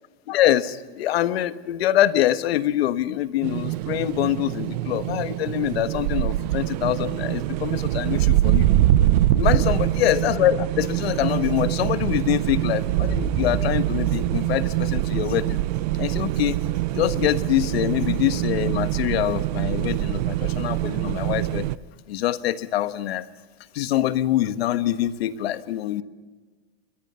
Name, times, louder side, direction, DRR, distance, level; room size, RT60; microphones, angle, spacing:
voice 1, 0.3-8.7 9.3-15.6 15.9-16.7 16.9-21.7 22.1-23.3 23.7-26.0, left 13 dB, 75° left, 12 dB, 1.4 m, -24 dB
sound 1, 3.4-21.8, right 14 dB, 40° right, 0.6 m, -24 dB
sound 2, 13.0-15.2, right 5 dB, 60° right, 7.1 m, -30 dB
27.5 x 22.5 x 5.7 m, 1.4 s
supercardioid pair, 180°, 31 cm